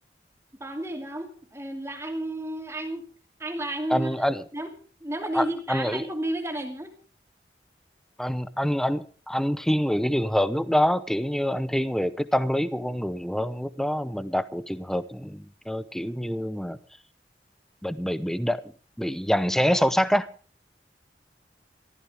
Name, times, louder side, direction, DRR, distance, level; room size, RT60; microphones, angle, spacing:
voice 1, 0.6-3.0 3.4-4.1 4.5-4.7 5.0-6.9, right 1 dB, 15° right, 2.7 m, -32 dB
voice 2, 3.9-4.4 5.3-6.0 8.2-16.8 17.8-18.6 19.0-20.3, equal, 5° left, 0.7 m, -26 dB
22.0 x 14.5 x 3.5 m
head